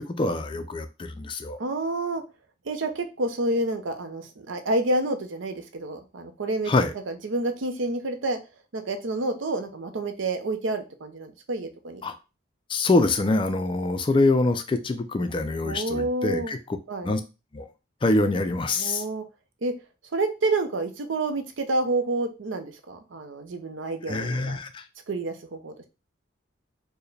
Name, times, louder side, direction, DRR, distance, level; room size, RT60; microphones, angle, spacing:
voice 1, 0.1-1.6 6.7-6.9 12.0-12.1 12.7-16.8 17.0-17.2 17.5-17.7 18.0-19.0 24.1-24.8, left 2 dB, 25° left, 0.3 m, -25 dB
voice 2, 1.6-2.2 2.6-6.7 7.1-8.4 8.7-12.0 15.6-16.5 16.9-17.1 18.7-19.3 19.6-19.8 20.1-24.6 25.1-25.7, right 2 dB, 80° right, 0.6 m, -29 dB
4.6 x 2.1 x 3.2 m
head